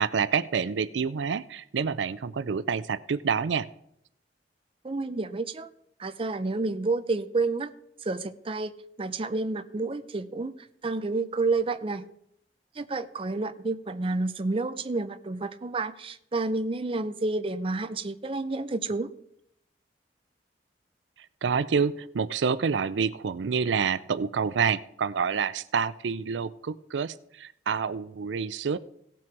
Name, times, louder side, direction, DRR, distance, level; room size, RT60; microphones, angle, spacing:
voice 1, 0.0-3.7 21.4-28.8, right 6 dB, 90° right, 16 dB, 0.5 m, -28 dB
voice 2, 4.8-5.7 6.0-7.7 8.0-12.1 12.7-19.1, right 3 dB, 30° right, 11 dB, 0.5 m, -30 dB
17.0 x 6.1 x 4.6 m, 0.73 s
head